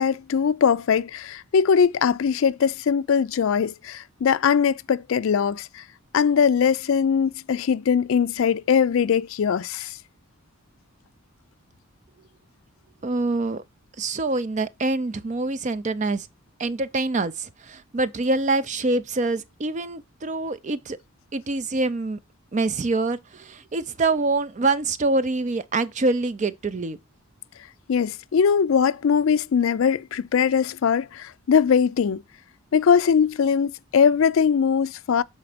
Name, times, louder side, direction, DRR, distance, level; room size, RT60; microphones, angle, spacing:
voice 1, 0.0-5.8 6.1-10.0 27.9-32.2 32.7-35.2, left 6 dB, 65° left, 0.4 m, -21 dB
voice 2, 13.0-13.6 14.0-16.3 16.6-21.0 21.3-22.2 22.5-27.0, right 2 dB, 35° right, 0.4 m, -25 dB
7.0 x 4.2 x 4.9 m
head